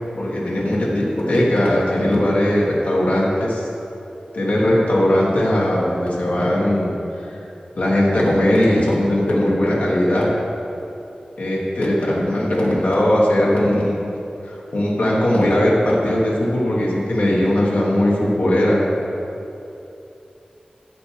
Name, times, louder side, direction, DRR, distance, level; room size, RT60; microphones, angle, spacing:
voice 1, 0.2-3.7 4.3-6.9 7.3-7.4 7.7-10.3 11.4-14.0 14.4-18.9, left 1 dB, 75° left, -5 dB, 1.3 m, -19 dB
7.2 x 6.0 x 4.8 m, 2.9 s
wide cardioid pair, 85°, 3 cm